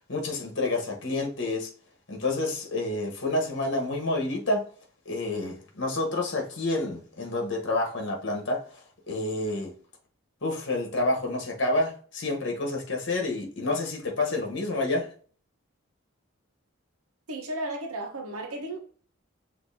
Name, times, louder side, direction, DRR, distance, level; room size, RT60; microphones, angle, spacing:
voice 1, 0.1-1.7 2.1-4.7 5.0-9.7 10.4-15.1, left 2 dB, 55° left, 1.2 m, -29 dB
voice 2, 17.3-18.8, right 1 dB, 90° right, 1.0 m, -34 dB
6.1 x 2.8 x 2.7 m
head